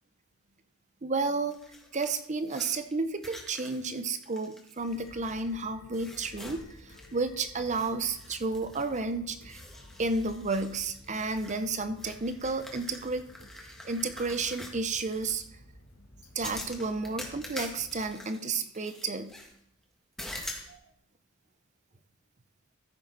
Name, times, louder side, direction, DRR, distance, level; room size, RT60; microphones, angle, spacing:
voice 1, 1.0-1.6 1.9-9.6 10.0-13.2 13.8-15.4 16.3-19.3 20.7-20.8, right 3 dB, 35° right, 10 dB, 0.7 m, -32 dB
sound 1, 1.5-5.6 5.9-7.3 7.6-9.1 9.5-15.5 16.4-19.5 20.2-20.7, left 1 dB, ahead, 1.6 m, -46 dB
sound 2, 4.7-18.1, left 1 dB, 75° left, 1.7 m, -53 dB
14.5 x 6.8 x 4.1 m, 0.70 s
head